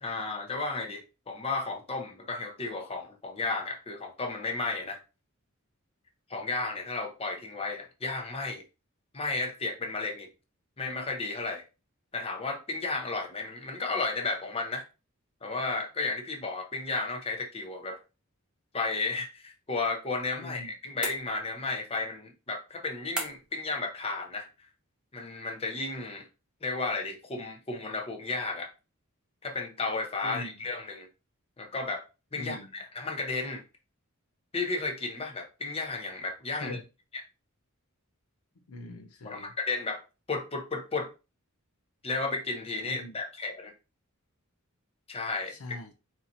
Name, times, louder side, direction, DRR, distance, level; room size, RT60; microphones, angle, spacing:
voice 1, 0.0-5.0 6.3-8.6 9.1-10.3 10.8-11.6 12.1-14.8 15.4-18.0 18.7-24.5 25.1-26.3 26.6-28.7 29.4-31.1 31.6-32.0 32.3-33.6 34.5-36.8 39.2-40.0 40.3-41.1 42.0-43.7 45.1-45.5, left 3 dB, 25° left, 0.8 m, -33 dB
voice 2, 20.4-20.7 30.2-30.6 32.4-32.7 36.5-36.8 38.6-39.6 42.8-43.2 45.5-45.9, left 2 dB, 85° left, 0.6 m, -42 dB
sound 1, 21.0-21.7 23.2-23.7, right 1 dB, 5° right, 0.7 m, -37 dB
4.0 x 2.8 x 2.6 m
head